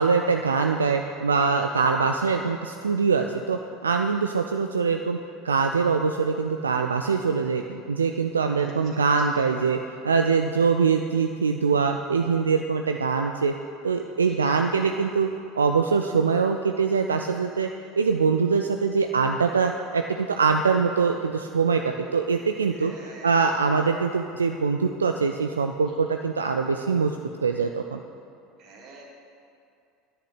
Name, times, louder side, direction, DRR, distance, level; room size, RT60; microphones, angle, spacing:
voice 1, 0.0-5.2 5.4-9.8 10.0-13.5 13.8-15.3 15.6-17.7 18.0-27.2 27.4-28.0, right 5 dB, 80° right, 5 dB, 0.4 m, -23 dB
voice 2, 8.5-9.0 9.3-9.5 14.2-14.6 22.7-23.4 25.9-26.2 28.6-29.0, right 3 dB, 45° right, -2 dB, 2.4 m, -48 dB
10.5 x 5.9 x 8.1 m, 2.6 s
figure-of-eight pair, 75°, 0 cm